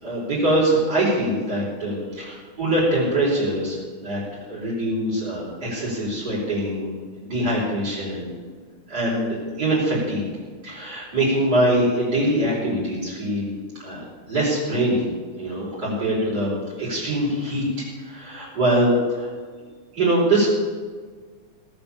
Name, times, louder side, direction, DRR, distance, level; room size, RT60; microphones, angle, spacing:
voice 1, 0.0-3.8 4.0-4.2 4.5-6.9 7.2-8.3 8.9-10.2 10.6-13.5 13.8-15.1 15.4-19.3 19.9-20.5, right 1 dB, 30° right, -10 dB, 4.7 m, -23 dB
18.5 x 7.2 x 6.9 m, 1.5 s
omnidirectional pair, 3.7 m